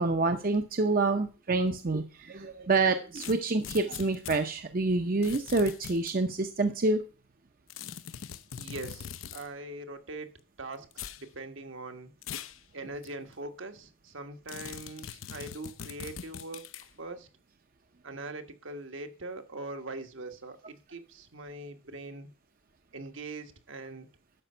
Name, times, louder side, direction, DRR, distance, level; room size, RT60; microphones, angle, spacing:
voice 1, 0.0-7.0, right 3 dB, 45° right, 7 dB, 0.7 m, -27 dB
sound 1, 3.2-4.4 5.2-6.2 7.7-9.5 10.9-11.2 12.2-12.6 13.0-13.1 14.5-16.9, left 8 dB, 80° left, 0.6 m, -42 dB
voice 2, 8.6-12.1 12.7-16.6 17.0-17.3 18.0-22.3 22.9-24.1, right 2 dB, 70° right, 6 dB, 1.3 m, -42 dB
12.0 x 5.2 x 5.6 m, 0.34 s
head